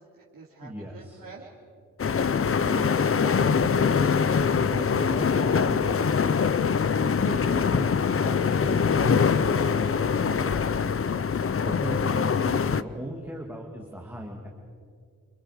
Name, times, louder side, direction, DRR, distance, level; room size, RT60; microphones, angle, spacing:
voice 1, 0.0-1.5 7.1-7.3, right 3 dB, 90° right, -5 dB, 3.2 m, -50 dB
voice 2, 0.6-1.2 2.6-4.1 4.6-6.2 7.2-10.8 11.6-14.5, right 1 dB, 5° right, 0 dB, 2.1 m, -37 dB
sound 1, 2.0-12.8, left 6 dB, 45° left, 0.6 m, -23 dB
30.0 x 26.5 x 4.9 m, 2.2 s
wide cardioid pair, 145°, 33 cm